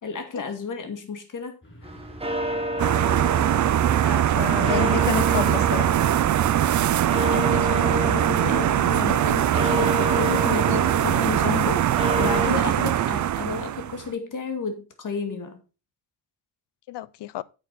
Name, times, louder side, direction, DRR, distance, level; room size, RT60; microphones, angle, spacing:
voice 1, 0.0-2.1 7.2-15.6, left 5 dB, 45° left, 2.3 m, -32 dB
sound 1, 1.6-11.1, equal, 25° left, 3.0 m, -44 dB
sound 2, 1.8-12.5, right 1 dB, 15° right, 1.4 m, -31 dB
sound 3, 2.8-14.1, right 11 dB, 45° right, 0.4 m, -22 dB
voice 2, 4.0-5.9 16.9-17.4, left 13 dB, 70° left, 0.6 m, -30 dB
8.8 x 7.6 x 4.2 m
wide cardioid pair, 155°, 44 cm